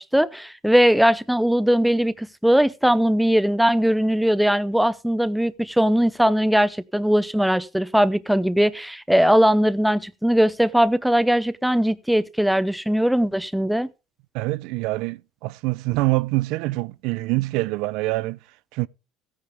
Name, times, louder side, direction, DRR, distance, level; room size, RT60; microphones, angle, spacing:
voice 1, 0.0-13.9, equal, ahead, 0.6 m, -20 dB
voice 2, 14.3-18.4 18.7-18.9, right 21 dB, 75° right, 0.5 m, -25 dB
16.0 x 9.7 x 3.5 m
cardioid pair, 135°, 0 cm